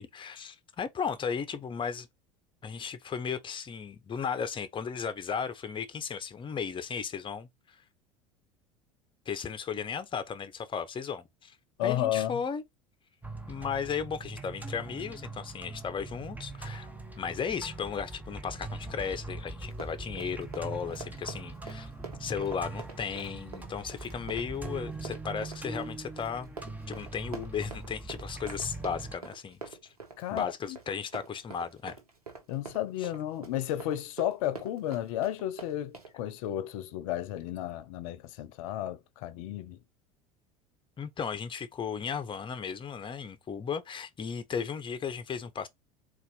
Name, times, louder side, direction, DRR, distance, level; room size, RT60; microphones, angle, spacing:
voice 1, 0.0-2.1 2.6-7.8 9.3-11.5 11.8-12.6 13.5-16.9 17.2-21.9 22.2-26.5 26.9-29.8 30.3-32.0 33.0-33.1 41.0-45.7, left 6 dB, 25° left, 0.8 m, -35 dB
voice 2, 11.8-12.4 30.2-30.8 32.5-39.8, left 12 dB, 60° left, 0.7 m, -33 dB
sound 1, 13.2-29.2, right 3 dB, 10° right, 0.9 m, -42 dB
Run, 19.6-36.1, right 4 dB, 85° right, 1.1 m, -45 dB
4.1 x 2.5 x 3.9 m
figure-of-eight pair, 75°, 19 cm